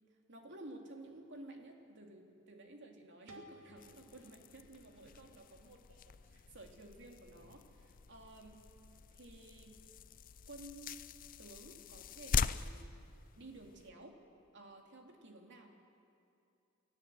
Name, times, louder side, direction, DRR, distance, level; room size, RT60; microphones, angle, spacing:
voice 1, 0.3-8.6 9.1-9.7 10.5-11.0 11.4-12.9 13.3-14.2 14.5-15.7, right 2 dB, 60° right, 2 dB, 2.8 m, -54 dB
sound 1, 3.3-6.1, right 1 dB, 80° right, 2.8 m, -60 dB
sound 2, 3.8-13.9, left 6 dB, 40° left, 0.5 m, -43 dB
29.0 x 15.5 x 7.8 m, 2.6 s
head